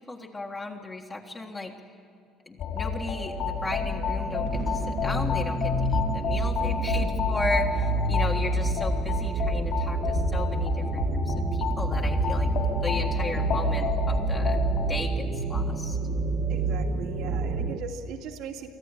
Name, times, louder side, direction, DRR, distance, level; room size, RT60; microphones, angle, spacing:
voice 1, 0.1-1.7 2.5-12.5 12.8-14.6 14.9-16.0, left 2 dB, 25° left, -1 dB, 1.7 m, -35 dB
sound 1, 2.6-14.9, left 6 dB, 60° left, 5.1 m, -30 dB
sound 2, 3.4-17.8, right 4 dB, 45° right, 1.3 m, -29 dB
voice 2, 6.6-7.1 16.5-18.7, right 7 dB, 70° right, 2 dB, 2.4 m, -39 dB
24.0 x 14.5 x 9.9 m, 2.3 s
cardioid pair, 130°, 0 cm